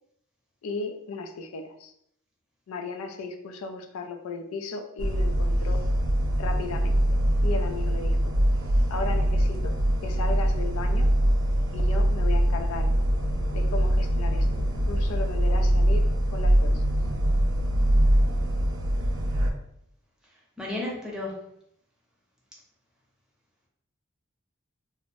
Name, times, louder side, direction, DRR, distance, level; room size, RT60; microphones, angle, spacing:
voice 1, 0.6-1.9 2.7-5.8 6.4-7.0 7.4-8.3 8.9-9.8 10.0-11.1 11.7-12.9 13.5-16.8, left 3 dB, 85° left, 5 dB, 0.4 m, -35 dB
sound 1, 5.0-19.5, equal, 85° right, 0.4 m, -23 dB
voice 2, 20.6-21.3, left 2 dB, 5° right, -4 dB, 0.6 m, -32 dB
2.6 x 2.0 x 3.0 m, 0.73 s
head